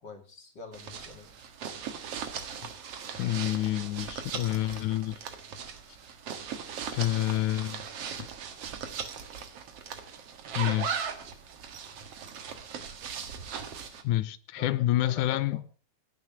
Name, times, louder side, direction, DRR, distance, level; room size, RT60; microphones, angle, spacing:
voice 1, 0.0-1.5 14.6-15.6, left 4 dB, 35° left, 3.3 m, -46 dB
sound 1, 0.7-14.0, right 7 dB, 55° right, 2.4 m, -39 dB
voice 2, 3.2-5.2 6.9-7.8 8.2-8.3 10.6-11.0 14.0-15.6, left 14 dB, 80° left, 2.3 m, -28 dB
17.5 x 6.7 x 8.8 m
omnidirectional pair, 3.5 m